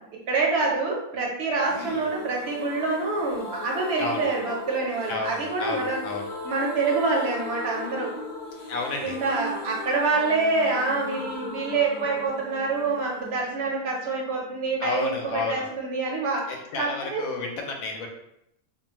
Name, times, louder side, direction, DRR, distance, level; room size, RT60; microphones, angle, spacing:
voice 1, 0.3-6.0 6.4-8.1 9.0-17.3, right 3 dB, 60° right, -2 dB, 0.7 m, -26 dB
sound 1, 1.7-15.3 15.5-15.6 15.9-16.0, left 2 dB, 40° left, 0.9 m, -38 dB
voice 2, 5.1-6.3 8.7-9.2 14.8-15.7 16.7-18.1, left 3 dB, 75° left, 2 dB, 1.0 m, -31 dB
2.5 x 2.2 x 2.9 m, 0.80 s
omnidirectional pair, 1.6 m